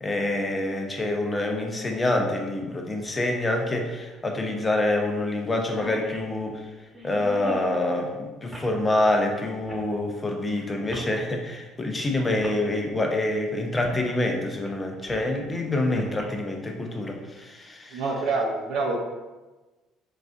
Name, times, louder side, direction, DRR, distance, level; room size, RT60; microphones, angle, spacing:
voice 1, 0.0-6.6 7.0-18.0, left 2 dB, 25° left, 2 dB, 0.6 m, -26 dB
sound 1, 4.2-4.3 4.8-5.0 5.3-5.4 5.6-7.8 8.5-8.7 9.7-9.9 10.9-11.1 11.9-12.0 12.4-12.6 13.8-14.0 14.4-15.4 16.0-16.2, equal, 5° right, 1.1 m, -40 dB
voice 2, 17.9-19.0, right 3 dB, 65° right, 0 dB, 0.6 m, -26 dB
4.0 x 2.4 x 2.4 m, 1.2 s
hypercardioid pair, 60°, 0 cm